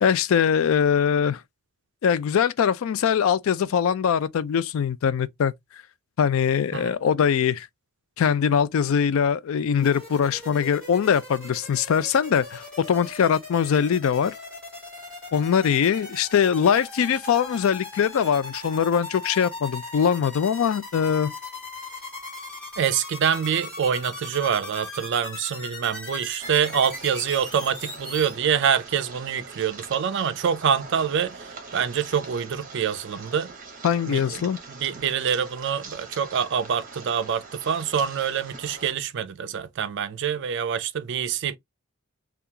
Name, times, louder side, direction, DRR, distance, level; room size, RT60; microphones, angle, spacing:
voice 1, 0.0-1.4 2.0-5.5 6.2-7.7 8.2-14.3 15.3-21.3 33.8-34.6, left 7 dB, 65° left, 0.3 m, -22 dB
sound 1, 9.8-28.3, left 2 dB, 5° left, 1.9 m, -39 dB
voice 2, 22.8-33.5 34.1-34.4 34.7-41.6, right 7 dB, 55° right, 0.4 m, -26 dB
sound 2, 26.4-38.9, right 4 dB, 40° right, 0.9 m, -43 dB
3.7 x 2.3 x 2.7 m
head